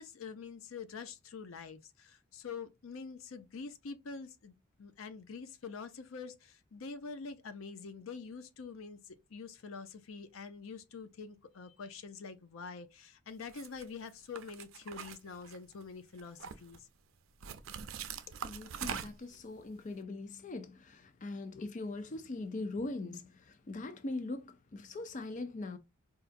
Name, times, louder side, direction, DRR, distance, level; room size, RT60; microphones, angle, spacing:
voice 1, 0.0-16.9, left 5 dB, 85° left, 0.6 m, -46 dB
sound 1, 13.5-13.8 14.4-15.8 16.2-16.8 17.4-19.4, right 8 dB, 80° right, 0.5 m, -42 dB
voice 2, 18.4-25.8, left 2 dB, 40° left, 0.4 m, -41 dB
4.4 x 2.4 x 2.5 m
head